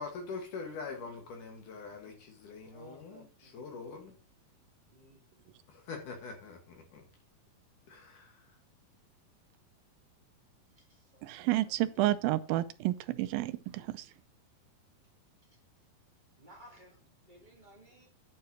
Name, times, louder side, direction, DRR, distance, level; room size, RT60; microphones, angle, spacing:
voice 1, 0.0-4.2 5.7-7.0 7.9-8.5, left 4 dB, 60° left, 3.1 m, -44 dB
voice 2, 2.7-3.9 4.9-5.4 10.8-12.0 16.4-18.1, right 1 dB, 20° right, 1.5 m, -58 dB
voice 3, 11.2-14.1, right 15 dB, 80° right, 2.2 m, -30 dB
10.5 x 4.7 x 6.1 m
omnidirectional pair, 4.3 m